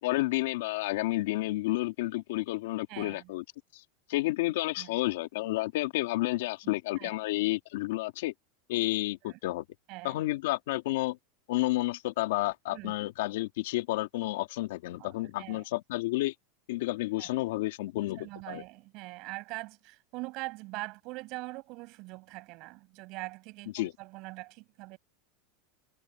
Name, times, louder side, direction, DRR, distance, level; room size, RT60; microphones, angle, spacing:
voice 1, 0.0-3.4 3.7-3.8 4.1-8.3 8.7-9.6 10.0-11.2 11.5-16.3 16.7-18.6 23.7-23.9, left 18 dB, 75° left, 2.4 m, -31 dB
voice 2, 2.9-3.3 4.8-4.9 6.6-7.2 9.2-9.4 9.9-10.2 12.7-12.9 15.0-15.6 17.2-17.3 18.2-25.0, right 24 dB, 45° right, 7.6 m, -43 dB
supercardioid pair, 155°, 0 cm